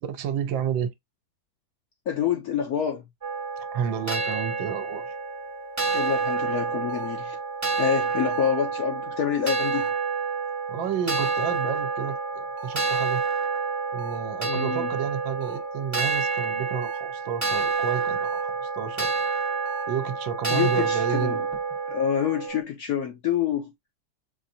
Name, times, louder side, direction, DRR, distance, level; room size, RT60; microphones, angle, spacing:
voice 1, 0.1-0.9 3.7-5.1 10.7-13.2 13.9-19.1 19.9-21.5, right 8 dB, 75° right, 1.4 m, -31 dB
voice 2, 2.1-3.0 5.9-7.4 7.8-9.9 14.4-14.9 20.5-21.5 21.9-23.7, left 8 dB, 65° left, 0.9 m, -27 dB
sound 1, 3.2-22.6, right 5 dB, 25° right, 0.3 m, -28 dB
sound 2, 6.9-7.3 8.3-8.7 9.7-10.1 11.1-11.5 12.6-13.0 14.0-14.4 15.4-15.8 16.8-17.2 18.2-18.6 19.7-20.1 21.1-21.4, right 6 dB, 50° right, 1.3 m, -45 dB
5.7 x 2.6 x 2.6 m
omnidirectional pair, 2.2 m